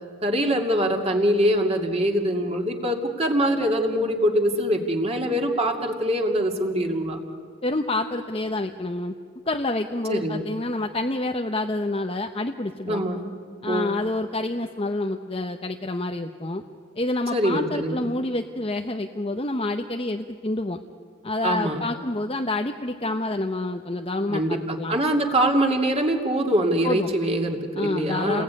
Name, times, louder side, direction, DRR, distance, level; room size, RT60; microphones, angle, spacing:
voice 1, 0.2-7.2 10.1-10.5 12.9-13.2 13.7-13.9 17.3-18.1 21.4-21.8 24.3-28.4, equal, 25° right, 2 dB, 2.4 m, -23 dB
voice 2, 7.6-9.1 9.5-13.0 13.6-16.6 17.0-20.8 21.2-24.9 26.8-27.1 27.8-28.4, left 2 dB, 25° left, 4 dB, 0.9 m, -28 dB
30.0 x 21.0 x 9.6 m, 2.2 s
head